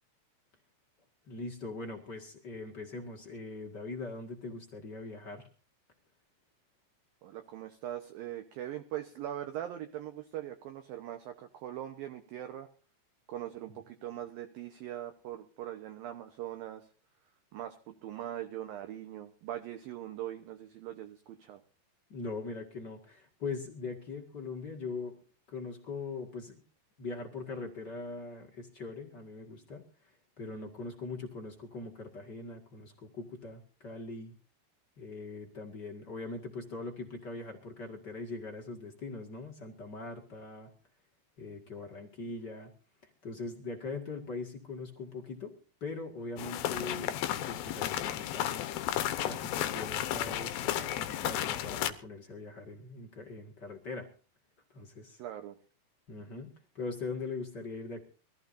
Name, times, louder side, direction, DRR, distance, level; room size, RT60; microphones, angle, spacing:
voice 1, 1.2-5.5 13.7-13.8 22.1-25.2 25.5-26.6 27.0-30.1 30.4-34.4 35.0-40.7 41.4-42.7 43.2-45.5 45.8-48.6 49.2-54.1 54.7-55.2 56.1-58.0, left 3 dB, 40° left, 2 dB, 1.5 m, -41 dB
voice 2, 7.2-12.7 13.3-16.9 17.5-21.6 55.2-55.6, right 12 dB, 70° right, 6 dB, 2.4 m, -41 dB
sound 1, 46.4-51.9, left 12 dB, 70° left, 2.5 m, -33 dB
23.5 x 14.5 x 2.7 m, 0.38 s
omnidirectional pair, 5.0 m